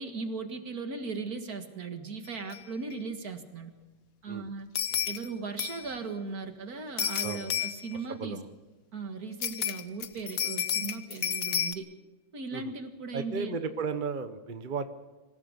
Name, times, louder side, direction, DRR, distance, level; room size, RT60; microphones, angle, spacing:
voice 1, 0.0-3.7 4.2-4.7 5.1-8.4 8.9-11.9 12.3-13.6, right 4 dB, 55° right, 6 dB, 2.2 m, -37 dB
sound 1, 2.5-2.6 2.9-3.0 4.7-5.3 5.6-5.9 7.0-8.0 9.4-11.7, left 9 dB, 55° left, 1.2 m, -31 dB
voice 2, 7.2-7.6 7.9-8.5 12.5-12.7 13.1-14.9, right 5 dB, 35° right, 9 dB, 0.8 m, -35 dB
26.0 x 16.0 x 6.7 m, 1.2 s
omnidirectional pair, 2.0 m